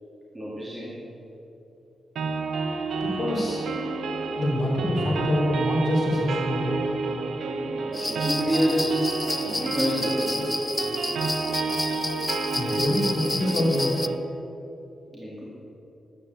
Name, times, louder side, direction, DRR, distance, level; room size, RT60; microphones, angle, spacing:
voice 1, 0.3-1.0 7.8-9.0 9.4-10.5 15.1-15.4, equal, 15° right, -6 dB, 2.4 m, -28 dB
sound 1, 2.2-14.2, right 4 dB, 80° right, 1.0 m, -30 dB
voice 2, 3.0-3.7 4.4-6.8 12.5-14.0, left 1 dB, 35° left, -4 dB, 3.0 m, -26 dB
sound 2, 7.9-14.1, left 2 dB, 15° left, 0.4 m, -31 dB
13.0 x 8.9 x 8.0 m, 2.9 s
wide cardioid pair, 160°, 0 cm